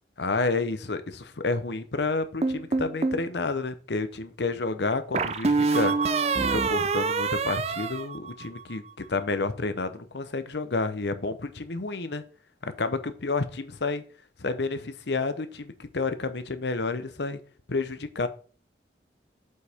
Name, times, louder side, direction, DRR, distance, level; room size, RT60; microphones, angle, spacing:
voice 1, 0.2-5.9 6.4-12.2 12.6-14.0 14.4-17.4 17.7-18.3, left 3 dB, 70° left, 11 dB, 0.8 m, -30 dB
sound 1, 2.4-3.2 5.1-8.8, right 4 dB, 35° right, 0.4 m, -26 dB
8.0 x 5.4 x 3.5 m, 0.40 s
head